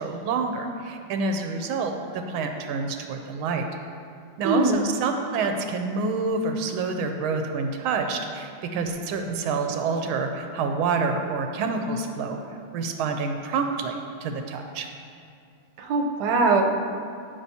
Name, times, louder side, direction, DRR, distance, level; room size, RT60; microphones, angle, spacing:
voice 1, 0.0-3.7 4.4-12.4 12.7-14.9, right 4 dB, 85° right, 5 dB, 1.4 m, -27 dB
voice 2, 4.4-4.8 15.8-16.6, right 3 dB, 65° right, 2 dB, 1.2 m, -21 dB
12.5 x 5.7 x 2.8 m, 2.3 s
omnidirectional pair, 2.3 m